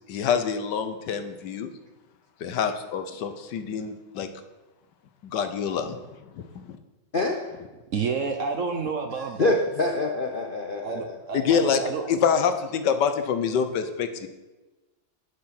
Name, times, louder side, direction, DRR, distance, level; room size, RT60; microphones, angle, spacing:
voice 1, 0.1-1.7 2.4-4.3 5.2-6.8 11.3-11.8 12.1-14.3, left 7 dB, 75° left, 9 dB, 1.4 m, -26 dB
voice 2, 7.1-7.6 9.4-11.5, left 2 dB, 50° left, 2 dB, 0.6 m, -26 dB
voice 3, 7.9-9.5 10.8-12.0, right 5 dB, 55° right, 6 dB, 0.9 m, -29 dB
11.5 x 6.6 x 5.8 m, 1.1 s
omnidirectional pair, 1.9 m